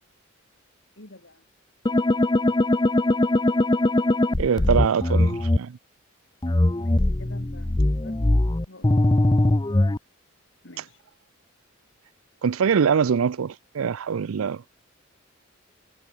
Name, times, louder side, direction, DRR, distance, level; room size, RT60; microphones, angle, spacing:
voice 1, 1.0-1.4 6.8-8.2 8.7-9.1 10.6-11.0, left 2 dB, 60° left, 2.8 m, -48 dB
sound 1, 1.9-5.6 6.4-10.0, left 1 dB, 20° left, 0.6 m, -21 dB
voice 2, 4.4-5.8 12.4-14.6, right 6 dB, 80° right, 0.5 m, -23 dB
head